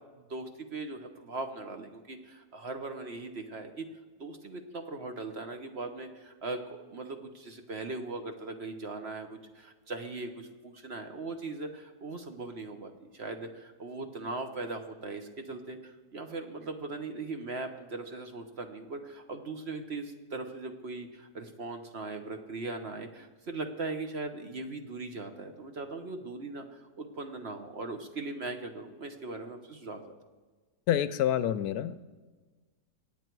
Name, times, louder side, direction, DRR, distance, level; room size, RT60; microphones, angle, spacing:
voice 1, 0.1-3.8 4.2-30.0, right 3 dB, 45° right, 6 dB, 1.1 m, -39 dB
voice 2, 30.9-32.1, left 10 dB, 75° left, 14 dB, 1.0 m, -28 dB
22.5 x 9.0 x 4.6 m, 1.3 s
omnidirectional pair, 1.7 m